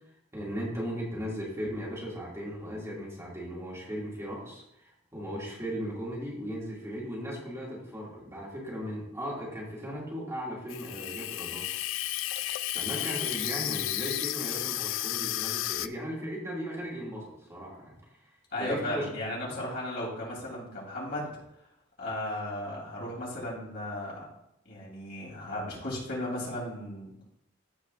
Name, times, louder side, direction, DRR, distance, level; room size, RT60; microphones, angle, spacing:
voice 1, 0.3-11.7 12.7-18.3 18.6-19.1 19.5-19.6, equal, 15° right, -6 dB, 2.3 m, -37 dB
Water tap faucet / Sink (filling or washing), 10.7-15.9, left 15 dB, 75° left, 0.3 m, -32 dB
voice 2, 18.5-21.3 22.0-24.3 24.7-27.2, left 1 dB, 55° left, -5 dB, 3.4 m, -35 dB
15.5 x 5.2 x 2.5 m, 0.80 s
head